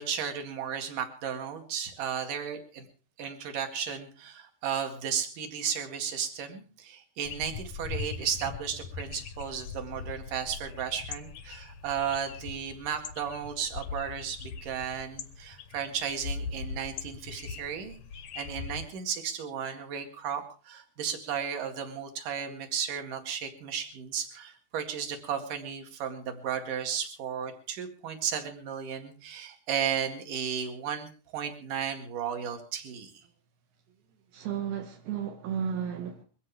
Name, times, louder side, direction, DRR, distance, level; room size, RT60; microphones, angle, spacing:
voice 1, 0.0-2.9 3.2-18.0 18.4-33.2, right 8 dB, 60° right, 3.5 m, -34 dB
sound 1, 7.3-18.9, left 5 dB, 75° left, 1.5 m, -40 dB
voice 2, 34.3-36.2, right 8 dB, 75° right, 3.2 m, -33 dB
22.5 x 15.5 x 3.4 m
omnidirectional pair, 4.5 m